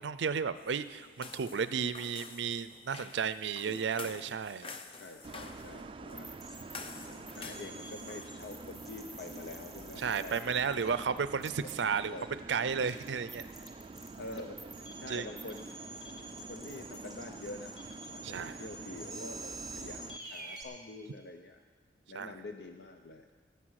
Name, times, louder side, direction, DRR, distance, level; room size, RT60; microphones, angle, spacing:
voice 1, 0.0-4.7 10.0-12.1 12.5-13.5 15.1-15.3 18.2-18.5 22.1-22.3, right 6 dB, 85° right, 14 dB, 0.5 m, -33 dB
sound 1, 0.5-11.1, left 4 dB, 30° left, 0.7 m, -50 dB
voice 2, 3.7-4.2 5.0-6.4 7.0-11.0 11.8-12.3 14.2-15.7 16.5-17.7 18.1-21.6 22.1-23.3, left 2 dB, 65° left, 5 dB, 0.7 m, -46 dB
sound 2, 5.2-20.2, right 3 dB, 30° right, 0.3 m, -47 dB
sound 3, 6.2-20.6, right 2 dB, ahead, 1.8 m, -49 dB
18.5 x 8.1 x 6.4 m, 1.4 s
head